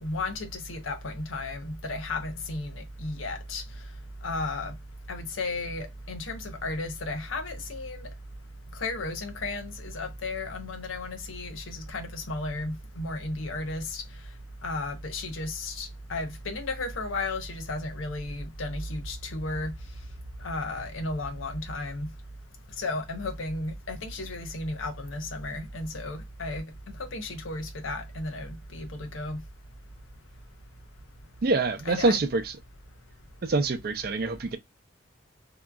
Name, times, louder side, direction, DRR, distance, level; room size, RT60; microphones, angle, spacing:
voice 1, 0.0-3.6 4.2-4.7 5.1-8.1 8.8-14.0 14.6-19.7 20.4-22.1 22.8-26.6 27.0-29.4 31.9-32.2, left 2 dB, 90° left, 0.8 m, -34 dB
voice 2, 31.4-32.6 33.4-34.6, right 3 dB, 50° right, 0.5 m, -25 dB
2.8 x 2.3 x 2.3 m
head